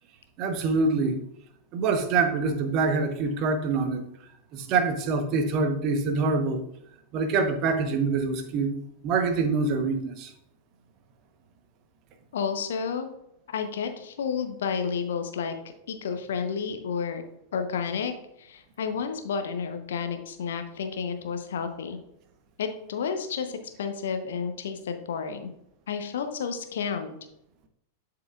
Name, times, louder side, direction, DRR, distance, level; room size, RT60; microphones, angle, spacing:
voice 1, 0.4-1.2 1.7-4.0 4.5-6.6 7.1-8.7 9.0-10.3, right 4 dB, 40° right, 7 dB, 1.0 m, -25 dB
voice 2, 12.3-13.1 13.5-15.6 15.9-17.2 17.5-18.1 18.4-22.0 22.6-25.5 25.9-27.2, left 6 dB, 60° left, 7 dB, 0.9 m, -31 dB
11.0 x 4.8 x 2.4 m, 0.78 s
figure-of-eight pair, 90°, 0 cm